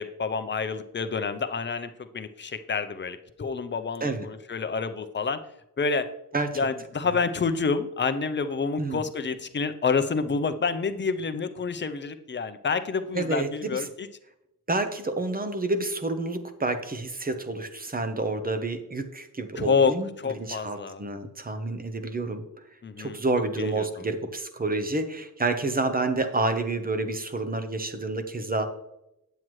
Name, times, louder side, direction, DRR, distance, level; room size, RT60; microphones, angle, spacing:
voice 1, 0.0-5.4 5.8-6.1 6.5-14.1 19.6-21.0 22.8-23.2 23.6-24.0, left 5 dB, 30° left, 9 dB, 0.5 m, -28 dB
voice 2, 13.1-13.8 14.7-20.1 20.4-22.4 23.0-28.6, right 2 dB, 25° right, 8 dB, 0.7 m, -29 dB
9.1 x 7.5 x 3.1 m, 0.87 s
wide cardioid pair, 140°, 37 cm